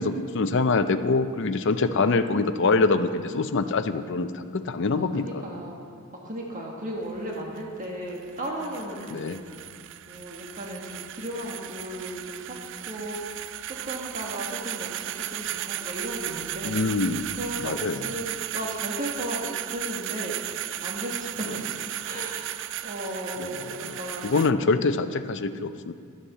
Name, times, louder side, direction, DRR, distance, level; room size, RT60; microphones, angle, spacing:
voice 1, 0.0-5.4 9.1-9.4 16.6-17.3 17.6-18.1 23.4-24.0 24.2-25.9, left 3 dB, 60° left, 10 dB, 0.5 m, -25 dB
voice 2, 4.9-5.8 6.2-9.7 10.1-12.5 12.9-16.8 17.3-20.4 20.8-22.5 22.8-24.8, equal, 35° right, -2 dB, 1.5 m, -35 dB
sound 1, 7.0-24.5, right 13 dB, 60° right, 0.3 m, -35 dB
11.5 x 8.3 x 7.3 m, 2.2 s
head